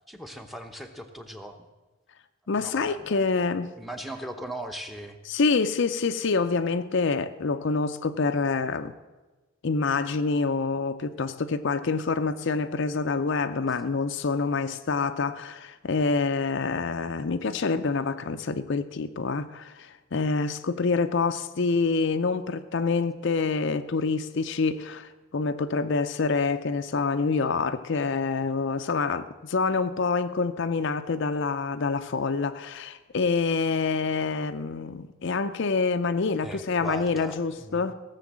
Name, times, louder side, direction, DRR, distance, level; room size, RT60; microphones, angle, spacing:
voice 1, 0.1-1.6 2.6-3.2 3.8-5.2 36.4-37.9, right 1 dB, ahead, 5 dB, 0.8 m, -39 dB
voice 2, 2.5-3.7 5.2-8.9 9.6-37.9, left 4 dB, 55° left, 9 dB, 0.5 m, -27 dB
16.5 x 7.1 x 7.3 m, 1.2 s
head